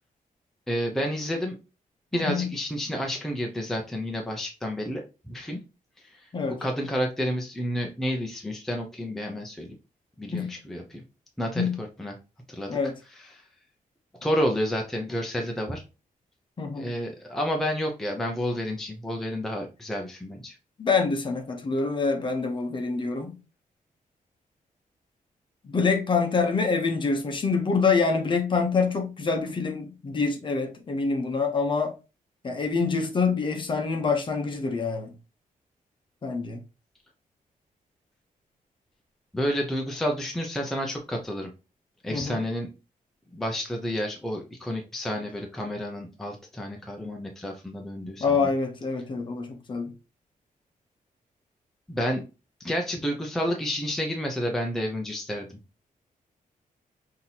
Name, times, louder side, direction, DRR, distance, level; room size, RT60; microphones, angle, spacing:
voice 1, 0.7-1.6 2.1-5.6 6.0-6.2 6.6-9.8 10.2-11.0 11.4-12.1 12.5-12.8 13.1-13.4 14.2-15.8 16.7-20.6 39.3-41.5 42.0-42.7 43.3-48.5 51.9-52.2 52.6-55.6, equal, ahead, 0.5 m, -30 dB
voice 2, 2.1-2.5 6.3-6.6 10.3-10.5 11.6-11.8 12.7-12.9 16.6-16.9 20.8-23.3 25.6-31.9 32.4-35.1 36.2-36.6 42.1-42.4 48.2-49.9, left 4 dB, 35° left, 0.8 m, -26 dB
5.7 x 2.7 x 2.8 m
wide cardioid pair, 170°, 15 cm